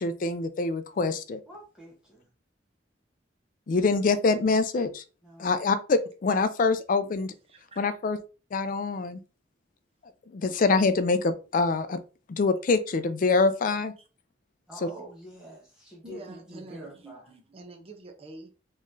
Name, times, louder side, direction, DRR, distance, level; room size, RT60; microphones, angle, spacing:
voice 1, 0.0-1.4 3.7-5.0 5.4-7.3 7.8-8.2 8.5-9.2 10.3-12.0 12.3-13.9, left 4 dB, 50° left, 0.4 m, -25 dB
voice 2, 1.5-2.3 5.2-5.6 14.7-17.3, right 1 dB, 5° right, 0.9 m, -46 dB
voice 3, 16.0-18.5, right 2 dB, 35° right, 0.7 m, -46 dB
4.0 x 3.0 x 2.6 m
head